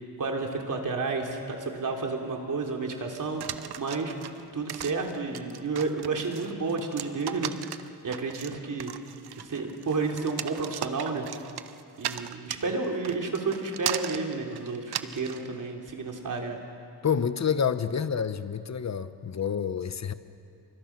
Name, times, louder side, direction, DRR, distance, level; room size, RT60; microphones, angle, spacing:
voice 1, 0.2-4.1 4.5-7.5 8.0-8.9 9.4-11.3 12.0-16.6, right 4 dB, 50° right, 1 dB, 3.5 m, -31 dB
sound 1, 3.4-15.4, right 10 dB, 75° right, 0.9 m, -37 dB
voice 2, 17.0-20.1, left 7 dB, 45° left, 11 dB, 1.1 m, -28 dB
28.5 x 24.5 x 6.1 m, 2.6 s
cardioid pair, 110°, 39 cm